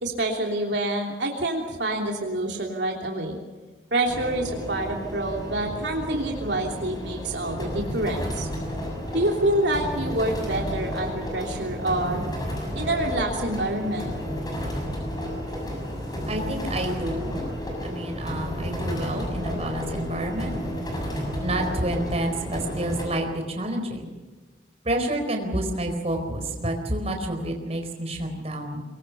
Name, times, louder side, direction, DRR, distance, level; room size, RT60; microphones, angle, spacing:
voice 1, 0.0-3.4 3.9-8.5 9.1-12.2 12.7-14.1, right 1 dB, 65° right, 1 dB, 3.1 m, -27 dB
sound 1, 4.1-23.1, equal, 20° left, 6.7 m, -32 dB
voice 2, 16.3-17.4 17.8-20.6 21.4-24.1 24.8-28.8, right 1 dB, 35° right, 4 dB, 4.3 m, -29 dB
24.0 x 21.5 x 7.0 m, 1.3 s
head